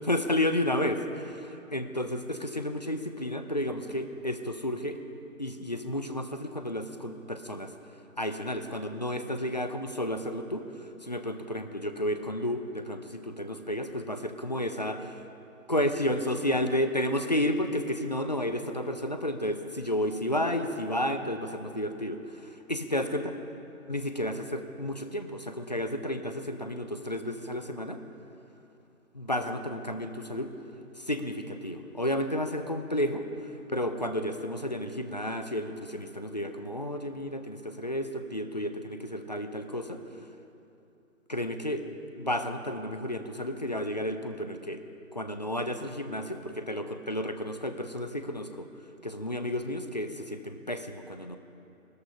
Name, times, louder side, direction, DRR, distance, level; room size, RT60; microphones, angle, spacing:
voice 1, 0.0-5.0 5.4-7.7 8.2-10.6 11.0-15.2 15.7-22.2 22.7-23.3 23.9-28.0 29.1-30.5 31.0-33.2 33.7-40.0 41.3-41.8 42.1-44.8 45.1-48.7 49.0-51.4, left 1 dB, 30° left, 8 dB, 0.6 m, -31 dB
17.5 x 13.5 x 5.5 m, 2.8 s
figure-of-eight pair, 150°, 42 cm